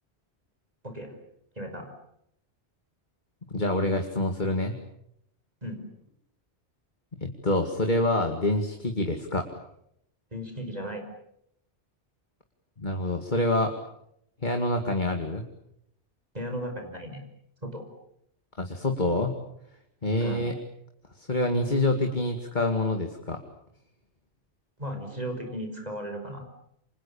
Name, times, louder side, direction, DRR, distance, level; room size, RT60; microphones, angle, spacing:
voice 1, 0.8-1.1 1.6-1.9 5.6-5.8 10.3-11.0 16.3-17.2 17.6-17.9 20.2-20.4 24.8-26.5, equal, 35° right, 5 dB, 5.4 m, -35 dB
voice 2, 3.5-4.7 7.2-9.5 12.8-13.7 14.4-15.4 18.6-19.3 20.0-20.5 21.2-23.4, left 1 dB, 40° left, 4 dB, 2.4 m, -26 dB
29.0 x 27.0 x 7.1 m, 0.76 s
omnidirectional pair, 1.2 m